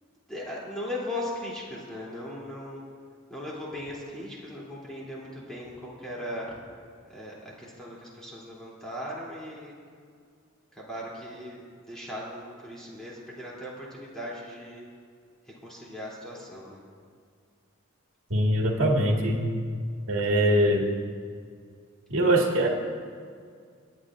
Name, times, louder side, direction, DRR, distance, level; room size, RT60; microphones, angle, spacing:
voice 1, 0.3-2.8 3.3-6.6 7.0-9.7 10.7-14.9 15.4-16.8, left 1 dB, 5° left, -6 dB, 2.8 m, -38 dB
voice 2, 18.3-19.4 20.1-20.9 22.1-22.7, right 1 dB, 70° right, -1 dB, 1.6 m, -22 dB
25.5 x 9.9 x 2.5 m, 2.1 s
head